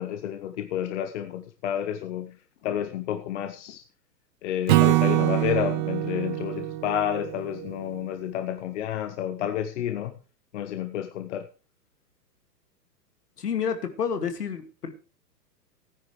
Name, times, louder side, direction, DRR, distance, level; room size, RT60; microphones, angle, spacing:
voice 1, 0.0-2.4 2.6-3.8 4.4-10.1 10.5-11.4, left 10 dB, 45° left, 8 dB, 1.3 m, -30 dB
Acoustic guitar / Strum, 4.7-8.0, right 18 dB, 30° right, 0.7 m, -24 dB
voice 2, 13.4-14.9, left 7 dB, 70° left, 8 dB, 2.4 m, -29 dB
17.0 x 10.0 x 3.3 m, 0.34 s
figure-of-eight pair, 110°, 49 cm